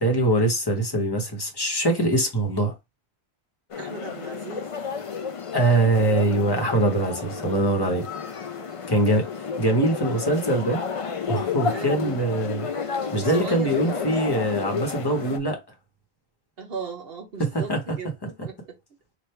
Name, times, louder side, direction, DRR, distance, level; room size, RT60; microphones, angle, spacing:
voice 1, 0.0-2.7 5.5-8.0 8.9-10.8 11.3-15.6 17.4-17.8, right 1 dB, 25° left, 1.0 m, -23 dB
sound 1, 3.7-15.4, left 6 dB, 45° left, 0.5 m, -31 dB
voice 2, 3.8-4.7 7.3-7.7 11.7-12.0 13.1-14.1 16.6-18.8, right 4 dB, 65° right, 1.1 m, -37 dB
3.3 x 2.5 x 4.3 m
omnidirectional pair, 1.1 m